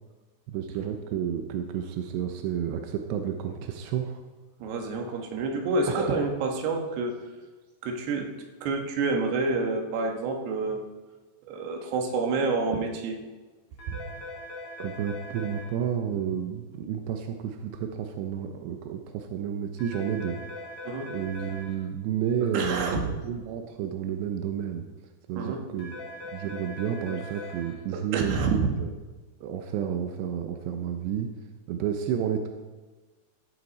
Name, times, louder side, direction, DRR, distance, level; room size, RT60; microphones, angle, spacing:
voice 1, 0.5-4.2 5.9-6.2 14.8-20.6 21.1-24.8 25.3-25.9 26.3-28.9 29.4-31.3 31.7-32.5, right 8 dB, 80° right, 5 dB, 2.5 m, -31 dB
voice 2, 4.6-7.2 7.8-8.3 8.6-10.8 11.5-13.2 13.9-14.0 20.8-21.1 22.5-23.1 25.4-25.6 27.9-28.7, right 3 dB, 65° right, 2 dB, 3.0 m, -28 dB
sound 1, 13.8-15.6 19.8-21.6 25.8-27.6, left 1 dB, 40° left, 2.5 m, -40 dB
15.5 x 9.4 x 4.2 m, 1.3 s
omnidirectional pair, 5.8 m